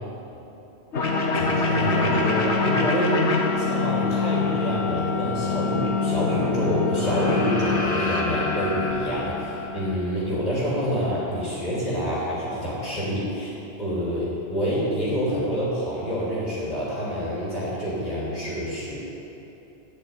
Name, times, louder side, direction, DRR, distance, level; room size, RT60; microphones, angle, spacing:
sound 1, 0.9-9.9, left 4 dB, 60° left, 1.5 m, -24 dB
voice 1, 1.3-3.2 3.5-19.0, equal, 30° left, -7 dB, 3.2 m, -27 dB
12.5 x 6.2 x 9.5 m, 3.0 s
omnidirectional pair, 1.3 m